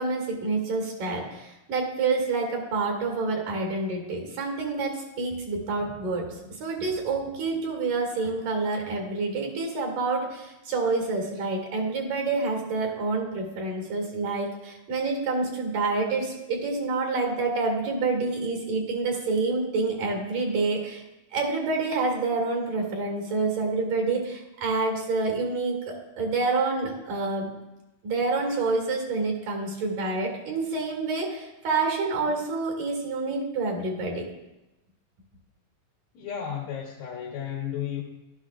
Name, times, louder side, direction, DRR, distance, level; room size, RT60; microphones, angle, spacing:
voice 1, 0.0-21.0 21.3-27.5 28.0-34.3, right 3 dB, 65° right, 1 dB, 3.6 m, -28 dB
voice 2, 36.1-38.0, left 9 dB, 90° left, -4 dB, 3.3 m, -33 dB
15.5 x 12.0 x 2.4 m, 0.97 s
omnidirectional pair, 4.3 m